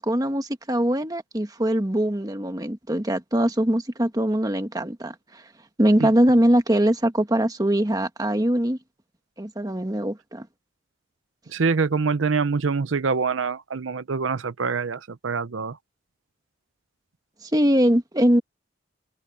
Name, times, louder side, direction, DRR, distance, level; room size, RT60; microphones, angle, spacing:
voice 1, 0.0-5.4 5.8-8.8 9.4-10.5 17.4-18.4, right 1 dB, 20° right, 1.4 m, -22 dB
voice 2, 11.5-15.8, right 4 dB, 80° right, 0.7 m, -25 dB
open air
head